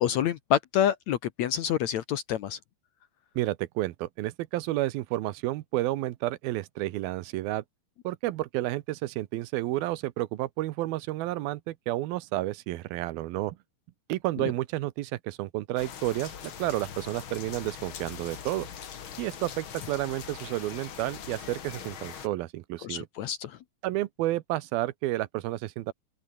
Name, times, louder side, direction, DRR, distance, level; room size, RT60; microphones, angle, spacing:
voice 1, 0.0-2.6 14.4-14.5 22.8-23.6, left 10 dB, 70° left, 1.8 m, -27 dB
voice 2, 3.4-7.6 8.0-13.6 14.1-18.7 19.2-23.1 23.8-25.9, right 16 dB, 90° right, 2.7 m, -31 dB
sound 1, 15.8-22.3, left 8 dB, 45° left, 1.8 m, -42 dB
open air
omnidirectional pair, 4.3 m